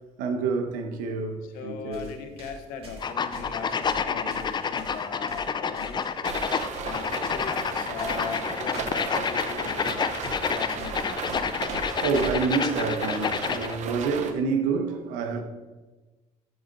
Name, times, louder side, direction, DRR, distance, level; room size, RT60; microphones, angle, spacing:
voice 1, 0.2-2.1 6.1-6.7 10.0-10.3 11.6-15.4, right 4 dB, 85° right, 0.9 m, -28 dB
voice 2, 1.5-6.1 6.8-10.0 10.6-11.2, left 6 dB, 85° left, 0.9 m, -39 dB
sound 1, 1.9-9.1 9.5-9.7 9.9-12.4, right 1 dB, 45° right, 2.1 m, -43 dB
sound 2, 3.0-13.8, left 6 dB, 35° left, 0.4 m, -29 dB
sound 3, 6.2-14.3, right 6 dB, 60° right, 0.8 m, -35 dB
12.5 x 4.9 x 2.6 m
supercardioid pair, 80°, 14 cm